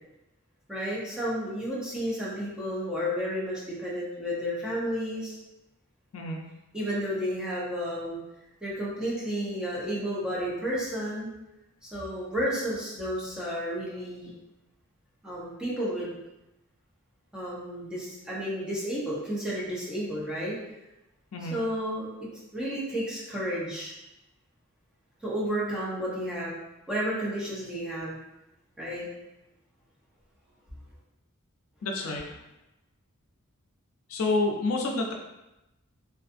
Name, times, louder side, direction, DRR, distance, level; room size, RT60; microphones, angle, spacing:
voice 1, 0.7-5.3 6.7-8.2 8.6-11.3 11.8-14.3 15.2-16.1 17.3-20.6 21.5-23.9 25.2-26.6 26.9-28.2 28.8-29.1, equal, 5° right, -8 dB, 0.7 m, -32 dB
voice 2, 31.8-32.2 34.1-35.1, left 2 dB, 80° left, 1 dB, 0.4 m, -28 dB
2.5 x 2.4 x 2.5 m, 0.94 s
head